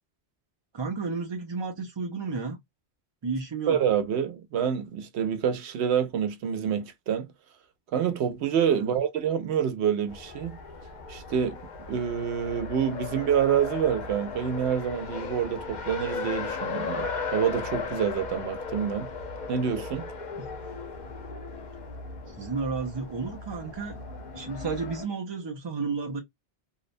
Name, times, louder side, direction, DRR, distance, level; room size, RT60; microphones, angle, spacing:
voice 1, 0.7-2.6 3.2-3.8 8.7-8.9 20.4-20.6 22.4-24.0 24.3-26.2, right 4 dB, 45° right, 0.3 m, -32 dB
voice 2, 3.7-7.3 7.9-10.6 11.1-11.6 11.9-19.1 19.5-20.1, right 8 dB, 85° right, 0.9 m, -27 dB
Race car auto racing, 10.1-25.1, left 4 dB, 50° left, 0.7 m, -36 dB
2.7 x 2.1 x 2.4 m
omnidirectional pair, 1.1 m